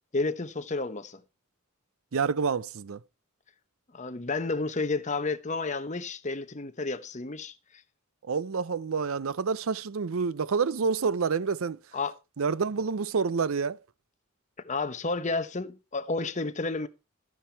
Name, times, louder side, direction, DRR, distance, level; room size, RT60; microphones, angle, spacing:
voice 1, 0.1-1.2 3.9-7.6 11.9-12.1 14.6-16.9, left 3 dB, 35° left, 1.0 m, -31 dB
voice 2, 2.1-3.0 8.2-11.8 12.4-13.8, right 5 dB, 70° right, 0.5 m, -28 dB
13.5 x 9.9 x 4.5 m
head